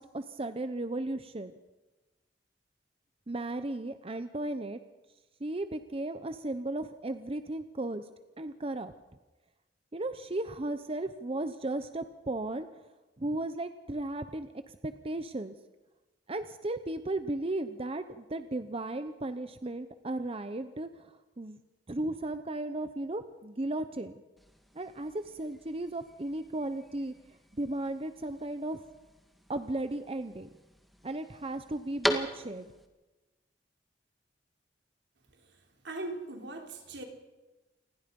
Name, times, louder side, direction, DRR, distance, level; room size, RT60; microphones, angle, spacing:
voice 1, 0.0-1.5 3.3-4.8 5.4-8.1 8.4-8.9 9.9-12.7 13.2-15.5 16.3-21.6 21.9-24.2 24.7-27.1 27.5-28.8 29.5-30.5 31.0-32.7, right 2 dB, 35° right, 10 dB, 0.8 m, -35 dB
sound 1, 24.4-32.9, equal, ahead, 2.0 m, -40 dB
voice 2, 35.8-37.0, right 2 dB, 80° right, 3 dB, 3.7 m, -40 dB
28.5 x 20.5 x 5.4 m, 1.1 s
head